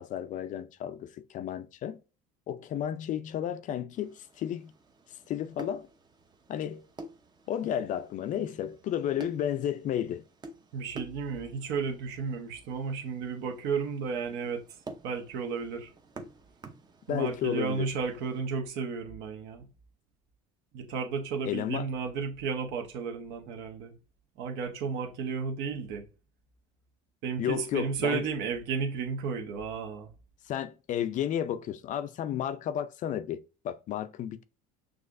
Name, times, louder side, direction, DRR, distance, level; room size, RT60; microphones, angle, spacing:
voice 1, 0.0-2.0 2.5-4.7 5.3-5.9 6.5-6.8 7.5-10.2 17.1-17.9 21.5-21.9 27.4-28.3 30.5-34.4, left 10 dB, 45° left, 0.5 m, -32 dB
sound 1, 3.9-18.4, right 2 dB, 25° right, 0.7 m, -50 dB
voice 2, 10.7-14.6 15.0-15.9 17.1-19.6 20.7-24.0 24.4-26.0 27.2-30.1, right 5 dB, 70° right, 1.1 m, -33 dB
6.4 x 2.5 x 2.5 m
supercardioid pair, 105°, 18 cm